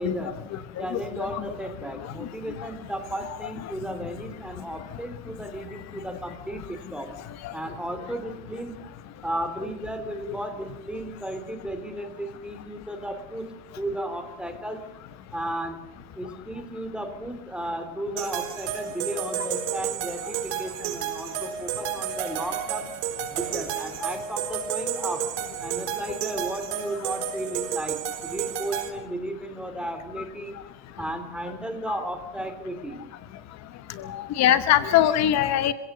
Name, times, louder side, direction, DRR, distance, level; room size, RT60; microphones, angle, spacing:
voice 1, 0.0-0.4 0.8-7.1 7.5-8.8 9.2-13.5 13.8-14.8 15.3-15.8 16.2-22.9 23.3-25.2 25.6-30.6 31.0-33.0, right 1 dB, 5° right, 6 dB, 2.9 m, -34 dB
voice 2, 0.5-1.4 2.6-2.7 3.6-3.7 7.4-7.5 10.3-10.4 31.9-32.0 34.0-35.7, left 11 dB, 55° left, 12 dB, 1.1 m, -23 dB
sound 1, 18.2-28.9, right 9 dB, 85° right, 4.2 m, -31 dB
27.0 x 16.5 x 6.7 m, 0.88 s
cardioid pair, 150°, 32 cm